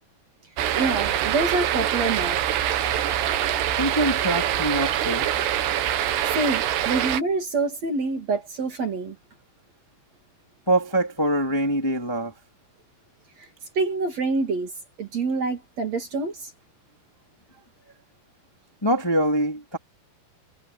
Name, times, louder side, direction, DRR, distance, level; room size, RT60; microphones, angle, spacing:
sound 1, 0.6-7.2, right 11 dB, 80° right, 3.7 m, -24 dB
voice 1, 0.7-2.4 6.3-9.2 13.4-13.5 13.8-14.7 15.0-16.5, right 3 dB, 45° right, 3.6 m, -26 dB
voice 2, 3.7-5.3 10.7-12.3 18.8-19.8, right 1 dB, 5° left, 2.6 m, -24 dB
omnidirectional pair, 4.7 m